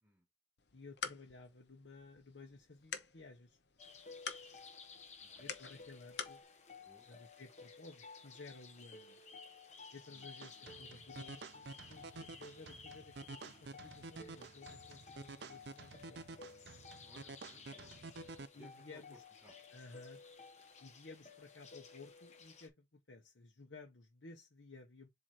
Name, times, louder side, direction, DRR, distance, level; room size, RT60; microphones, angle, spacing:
sound 1, 0.6-6.4, left 6 dB, 65° left, 0.9 m, -48 dB
voice 1, 0.7-3.6 5.4-6.4 7.1-9.2 9.9-16.2 18.5-19.2 19.7-20.2 20.8-25.1, left 3 dB, 90° left, 1.0 m, -56 dB
sound 2, 3.8-22.7, left 4 dB, 40° left, 1.1 m, -55 dB
voice 2, 5.2-5.5 6.8-7.1 10.1-10.3 17.0-18.2 18.5-19.6, equal, 10° right, 2.0 m, -63 dB
sound 3, 10.4-18.5, right 3 dB, 65° right, 0.6 m, -51 dB
7.6 x 2.8 x 4.4 m
head